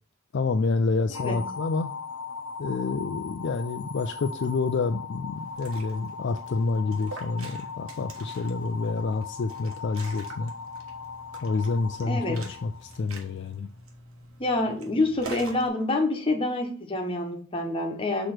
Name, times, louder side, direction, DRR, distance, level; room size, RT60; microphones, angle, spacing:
voice 1, 0.3-1.9 2.6-10.5 11.4-13.7, left 4 dB, 55° left, 7 dB, 0.4 m, -28 dB
sound 1, 1.1-13.3, left 5 dB, 85° left, 0.9 m, -39 dB
Liquid, 5.4-15.7, right 3 dB, 75° right, 1.2 m, -45 dB
voice 2, 12.0-12.4 14.4-18.3, left 2 dB, 25° left, 2 dB, 1.1 m, -27 dB
6.5 x 3.1 x 5.9 m, 0.43 s
head